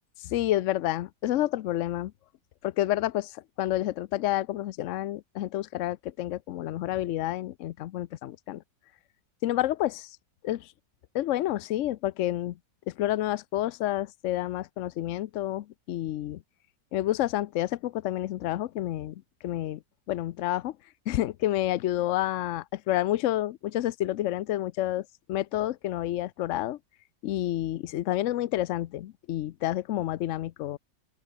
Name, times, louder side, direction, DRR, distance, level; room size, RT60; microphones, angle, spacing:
voice 1, 0.2-2.1 2.6-8.6 9.4-10.2 10.4-10.7 11.1-12.5 12.9-16.4 16.9-19.1 19.4-19.8 20.1-20.7 21.1-26.8 27.2-30.8, left 14 dB, 85° left, 0.6 m, -29 dB
open air
omnidirectional pair, 1.9 m